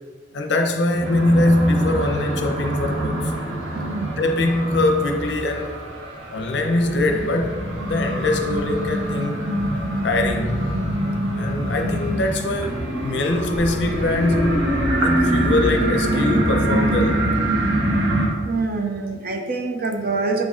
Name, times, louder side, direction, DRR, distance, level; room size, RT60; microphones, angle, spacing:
voice 1, 0.3-3.3 4.2-5.8 6.3-9.4 10.0-10.7 11.3-14.7 15.0-17.3, left 2 dB, 65° left, 4 dB, 0.6 m, -22 dB
sound 1, 0.9-18.3, right 1 dB, 90° right, 1.1 m, -24 dB
voice 2, 3.7-4.1 18.4-20.4, right 3 dB, 50° right, 4 dB, 0.6 m, -25 dB
7.9 x 3.9 x 3.6 m, 1.5 s
head